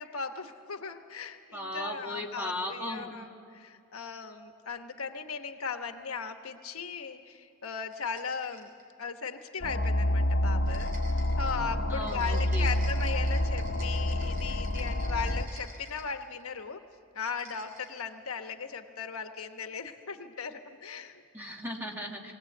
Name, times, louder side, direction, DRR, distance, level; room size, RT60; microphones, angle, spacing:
voice 1, 0.0-8.7 9.0-16.8 17.1-21.2, left 5 dB, 80° left, 7 dB, 1.2 m, -38 dB
voice 2, 1.5-3.1 11.9-12.7 21.3-22.3, left 1 dB, 10° right, 0 dB, 1.9 m, -37 dB
sound 1, 7.6-8.9 10.7-16.6 17.2-18.1, right 3 dB, 40° right, 3.2 m, -51 dB
sound 2, 9.6-15.5, left 1 dB, 60° left, 1.2 m, -28 dB
22.0 x 18.0 x 8.0 m, 2.4 s
head